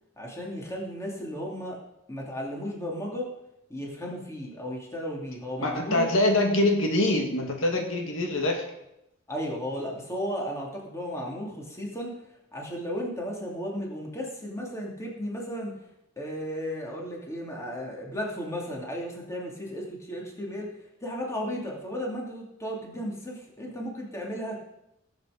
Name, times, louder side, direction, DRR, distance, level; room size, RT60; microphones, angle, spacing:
voice 1, 0.2-1.8 2.1-3.3 3.7-6.1 9.3-12.1 12.5-15.8 16.2-20.7 21.0-24.6, equal, 15° left, -2 dB, 2.8 m, -34 dB
voice 2, 5.6-8.6, left 1 dB, 80° left, 2 dB, 2.2 m, -24 dB
17.0 x 8.2 x 5.1 m, 0.85 s
head